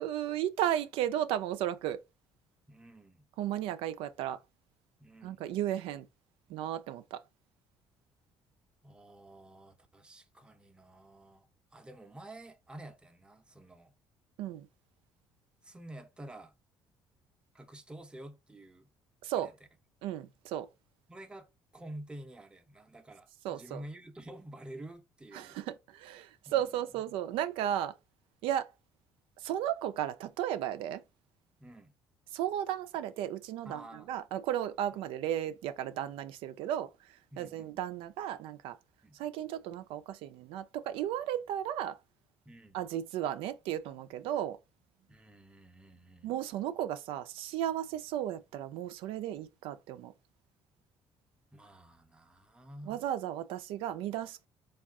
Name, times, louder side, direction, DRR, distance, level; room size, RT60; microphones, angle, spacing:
voice 1, 0.0-2.0 3.4-4.4 5.2-6.1 6.5-7.2 14.4-14.7 19.2-19.5 20.0-20.7 23.4-23.8 25.3-27.9 28.4-28.7 29.4-31.0 32.3-33.8 34.1-36.9 37.4-38.8 39.1-42.0 42.7-44.6 46.2-50.1 52.9-54.5, right 11 dB, 85° right, 0.3 m, -34 dB
voice 2, 2.7-3.3 5.0-5.4 8.8-13.9 15.6-16.5 17.5-18.9 19.4-19.5 21.1-25.6 26.5-26.7 31.6-31.9 33.6-34.1 37.3-37.7 39.0-39.2 42.5-42.8 45.1-46.3 51.5-53.0, right 1 dB, 10° right, 0.6 m, -50 dB
3.5 x 2.3 x 3.6 m
cardioid pair, 105°, 9 cm